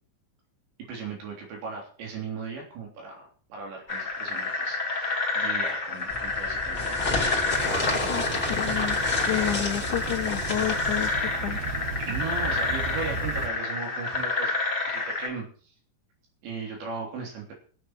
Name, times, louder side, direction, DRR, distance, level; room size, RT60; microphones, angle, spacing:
voice 1, 0.9-6.9 8.0-8.4 12.1-14.6 14.9-15.5 16.4-17.5, right 5 dB, 75° right, 0 dB, 5.6 m, -37 dB
sound 1, 3.9-15.3, left 3 dB, 40° left, 0.6 m, -29 dB
sound 2, 6.1-11.1, left 2 dB, 20° left, 1.7 m, -30 dB
sound 3, 7.5-13.5, right 5 dB, 55° right, 2.2 m, -36 dB
voice 2, 8.1-9.0 9.3-11.8, left 12 dB, 80° left, 2 dB, 1.7 m, -31 dB
22.5 x 7.9 x 4.5 m, 0.43 s
omnidirectional pair, 5.0 m